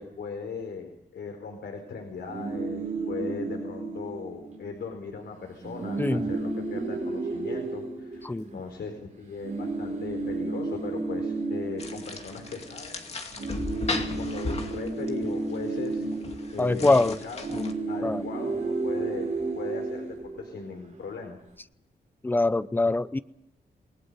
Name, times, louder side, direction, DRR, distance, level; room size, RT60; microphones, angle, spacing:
voice 1, 0.0-13.0 13.7-16.1 16.5-17.5 17.9-19.3 19.5-21.4, left 5 dB, 85° left, 4 dB, 4.4 m, -38 dB
sound 1, 2.2-4.8 5.1-5.2 5.5-8.9 9.4-13.0 13.2-20.8, right 3 dB, 45° right, 6.6 m, -33 dB
voice 2, 8.2-8.6 16.6-17.2 18.0-18.2 22.2-23.2, left 2 dB, 10° left, 14 dB, 0.7 m, -24 dB
sound 2, 11.8-17.7, left 3 dB, 40° left, 2.4 m, -36 dB
28.0 x 19.5 x 5.6 m, 0.84 s
wide cardioid pair, 160°, 17 cm